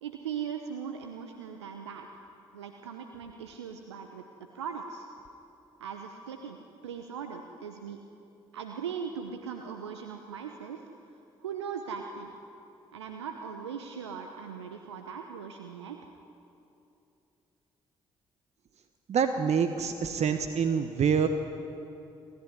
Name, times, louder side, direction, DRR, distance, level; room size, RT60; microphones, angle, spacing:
voice 1, 0.0-2.1 2.5-4.2 4.5-5.1 5.8-6.6 6.8-8.0 8.5-10.8 11.4-12.3 12.9-16.0, right 7 dB, 90° right, 5 dB, 0.9 m, -39 dB
voice 2, 19.1-21.3, right 7 dB, 50° right, 7 dB, 1.4 m, -26 dB
27.5 x 14.5 x 9.7 m, 2.8 s
hypercardioid pair, 45°, 14 cm